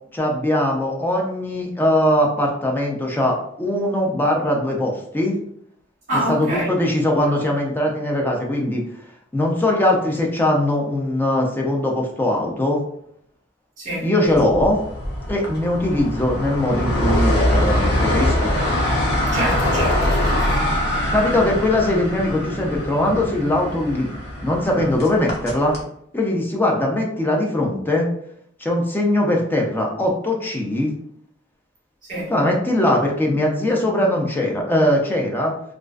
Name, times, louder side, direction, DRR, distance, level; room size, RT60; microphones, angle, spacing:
voice 1, 0.1-5.4 6.1-8.8 9.3-12.8 14.0-14.8 15.3-18.5 21.1-24.1 24.4-25.8 26.1-28.1 28.6-30.9 32.3-35.5, left 1 dB, 10° left, 0.4 m, -21 dB
voice 2, 6.1-6.7 13.8-14.1 19.3-20.6 32.0-32.3, right 1 dB, 40° right, 1.2 m, -26 dB
sound 1, 14.3-25.8, left 1 dB, 55° left, 0.7 m, -23 dB
2.4 x 2.3 x 2.2 m
head